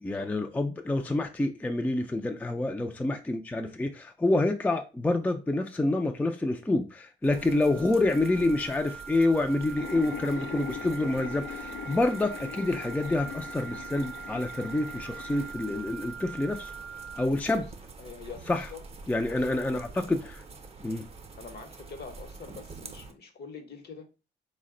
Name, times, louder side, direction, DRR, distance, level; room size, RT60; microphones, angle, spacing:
voice 1, 0.0-16.7 17.2-17.6 18.5-18.7 19.1-20.4 20.8-21.0, left 2 dB, 10° left, 0.4 m, -27 dB
sound 1, 7.2-23.1, right 3 dB, 30° right, 0.6 m, -47 dB
sound 2, 7.3-17.3, right 6 dB, 70° right, 0.6 m, -43 dB
sound 3, 9.8-15.5, left 7 dB, 70° left, 0.5 m, -41 dB
voice 2, 18.0-18.8 19.1-19.6 21.4-24.1, left 5 dB, 55° left, 0.9 m, -45 dB
3.9 x 2.1 x 3.7 m
cardioid pair, 90°, 20 cm